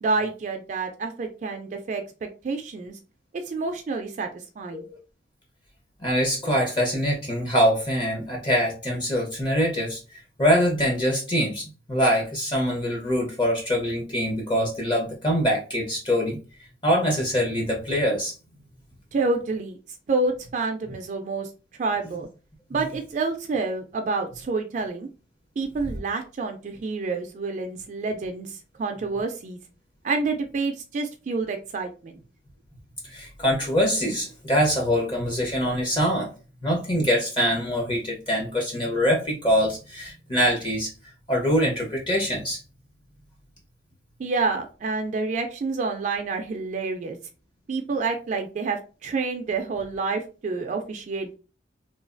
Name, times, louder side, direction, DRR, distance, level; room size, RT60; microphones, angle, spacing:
voice 1, 0.0-2.0 2.4-3.0 3.5-4.3 4.6-4.8 19.1-19.8 20.1-21.5 21.8-22.3 22.7-25.1 25.6-29.6 30.0-32.2 44.2-47.2 47.7-51.3, right 3 dB, 45° right, 4 dB, 0.3 m, -28 dB
voice 2, 6.0-16.4 16.8-18.3 33.0-36.3 36.6-40.9 41.3-42.6, equal, 25° left, -1 dB, 0.6 m, -24 dB
3.1 x 2.2 x 2.4 m, 0.34 s
head